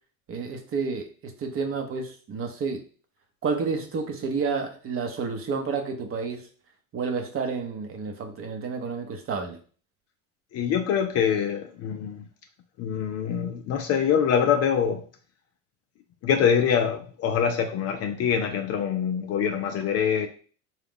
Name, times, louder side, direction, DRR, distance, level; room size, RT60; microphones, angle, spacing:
voice 1, 0.3-2.8 3.4-6.5 6.9-9.6, right 5 dB, 30° right, 5 dB, 0.8 m, -30 dB
voice 2, 10.5-12.2 12.8-15.0 16.2-20.3, left 7 dB, 35° left, 6 dB, 0.5 m, -24 dB
3.7 x 2.3 x 3.6 m, 0.40 s
hypercardioid pair, 90°, 43 cm